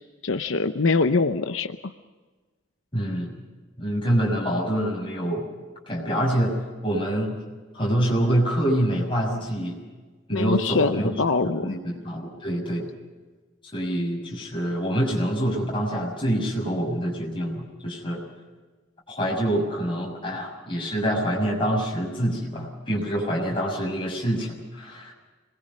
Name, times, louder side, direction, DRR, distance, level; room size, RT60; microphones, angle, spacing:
voice 1, 0.2-1.9 10.3-11.8, left 4 dB, 85° left, 8 dB, 0.8 m, -23 dB
voice 2, 2.9-3.3 3.8-5.4 5.9-6.5 6.8-7.4 7.7-9.8 10.3-11.1 11.4-12.9 13.7-18.2 19.1-25.1, equal, 25° left, -2 dB, 6.7 m, -26 dB
26.5 x 21.5 x 5.5 m, 1.3 s
head